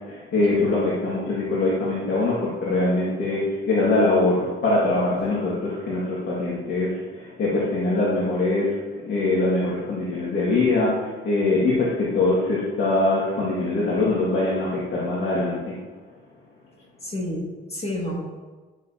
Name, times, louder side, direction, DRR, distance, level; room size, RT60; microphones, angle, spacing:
voice 1, 0.0-15.8, left 2 dB, 65° left, -6 dB, 2.0 m, -23 dB
voice 2, 17.0-18.2, left 1 dB, 30° left, -2 dB, 2.1 m, -30 dB
11.0 x 6.5 x 2.9 m, 1.3 s
cardioid pair, 90°, 20 cm